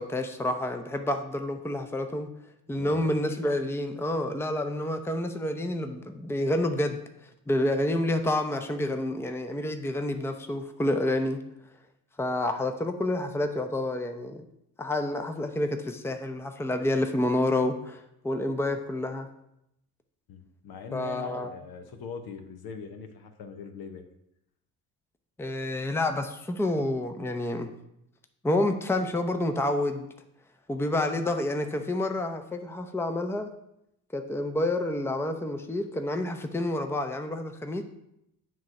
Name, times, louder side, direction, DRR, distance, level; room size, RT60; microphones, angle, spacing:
voice 1, 0.0-2.3 2.7-7.0 7.5-11.4 12.2-14.4 14.8-19.3 20.9-21.5 25.4-27.7 28.4-30.1 30.7-33.5 34.1-37.8, left 1 dB, 5° left, 6 dB, 0.7 m, -29 dB
voice 2, 2.7-3.1 20.3-24.0, left 6 dB, 60° left, 6 dB, 1.0 m, -42 dB
7.5 x 3.1 x 5.8 m, 0.79 s
supercardioid pair, 65°, 42 cm